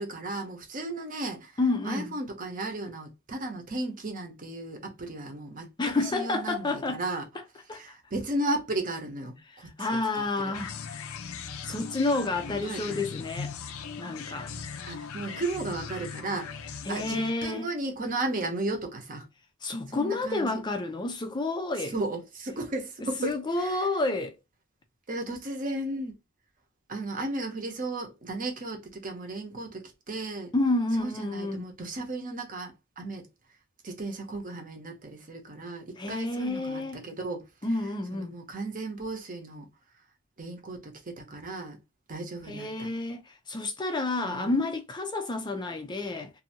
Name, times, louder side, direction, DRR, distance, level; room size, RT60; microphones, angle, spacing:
voice 1, 0.0-1.5 1.8-5.7 6.0-7.2 7.7-9.9 10.1-10.2 12.6-13.0 14.5-16.5 16.9-19.2 19.9-20.6 21.9-23.9 25.1-26.1 26.9-30.5 31.0-33.3 33.8-37.4 38.1-39.7 40.4-41.8 42.1-42.9 44.2-44.6, right 2 dB, 40° right, 0.8 m, -35 dB
voice 2, 1.6-2.1 5.8-7.0 7.3-7.4 7.7-7.9 9.5-11.1 11.6-13.5 14.0-14.5 16.8-17.7 19.6-21.9 23.2-24.4 30.5-31.7 36.0-37.0 37.6-38.4 42.5-46.3, left 2 dB, 20° left, 0.4 m, -30 dB
sound 1, 10.5-17.3, left 6 dB, 85° left, 0.5 m, -39 dB
2.6 x 2.6 x 2.8 m
head